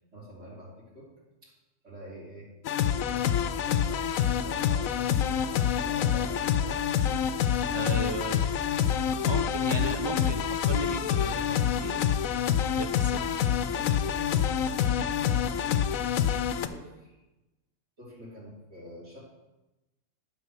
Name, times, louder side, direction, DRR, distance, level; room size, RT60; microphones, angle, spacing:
voice 1, 0.1-1.1 1.4-1.5 1.8-2.5 2.8-7.5 8.5-9.2 12.6-12.8 13.6-16.2 16.7-17.2 18.0-19.2, right 1 dB, 65° right, -7 dB, 3.4 m, -47 dB
sound 1, 2.6-16.7, left 9 dB, 90° left, 1.0 m, -27 dB
voice 2, 7.7-8.5 9.2-12.0 12.8-13.2, right 2 dB, 45° right, 6 dB, 0.3 m, -35 dB
11.0 x 5.4 x 6.1 m, 1.0 s
omnidirectional pair, 1.4 m